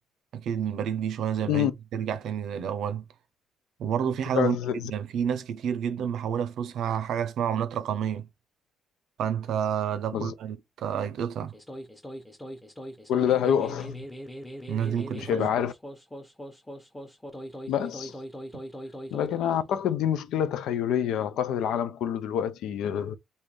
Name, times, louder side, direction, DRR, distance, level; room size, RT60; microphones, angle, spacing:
voice 1, 0.3-3.0 3.8-4.6 4.9-8.3 9.2-11.5 14.7-15.5, right 8 dB, 75° right, 0.6 m, -29 dB
voice 2, 4.3-4.9 10.1-10.3 13.1-14.0 15.2-15.7 17.7-18.1 19.1-23.2, left 9 dB, 85° left, 0.4 m, -27 dB
sound 1, 11.5-19.9, equal, 10° left, 1.0 m, -41 dB
3.5 x 2.7 x 3.1 m
cardioid pair, 90°, 0 cm